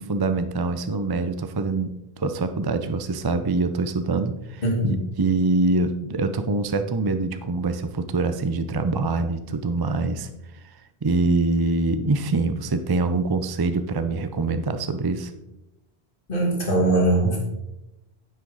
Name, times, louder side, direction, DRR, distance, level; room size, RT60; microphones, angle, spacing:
voice 1, 0.0-10.3 10.6-10.7 11.0-15.3, right 3 dB, 30° right, 9 dB, 0.4 m, -24 dB
voice 2, 4.6-5.0 16.3-17.4, right 2 dB, 60° left, -3 dB, 2.9 m, -21 dB
9.9 x 7.6 x 4.0 m, 0.93 s
omnidirectional pair, 1.0 m